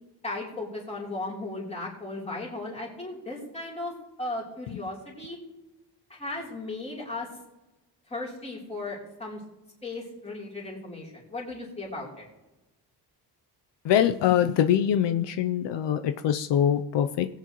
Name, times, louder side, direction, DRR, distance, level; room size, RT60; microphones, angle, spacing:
voice 1, 0.2-5.4 6.1-7.3 8.1-9.4 9.8-12.3, left 2 dB, 15° left, -4 dB, 3.3 m, -36 dB
voice 2, 13.8-17.3, left 10 dB, 80° left, 8 dB, 0.7 m, -23 dB
19.5 x 8.5 x 3.0 m, 1.0 s
cardioid pair, 150°, 42 cm